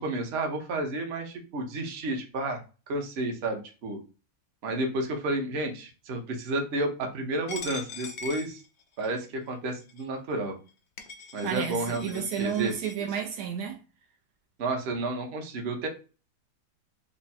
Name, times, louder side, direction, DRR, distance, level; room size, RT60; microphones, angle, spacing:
voice 1, 0.0-2.6 2.9-4.0 4.6-8.6 9.0-10.5 11.3-12.7 14.6-15.9, right 2 dB, 50° right, 0.9 m, -31 dB
Coin (dropping), 7.5-9.2 9.9-10.0 10.7-10.8 11.0-12.9, left 5 dB, 75° left, 0.6 m, -42 dB
voice 2, 11.4-13.8, right 8 dB, 75° right, 1.1 m, -31 dB
3.5 x 2.1 x 4.0 m
omnidirectional pair, 1.8 m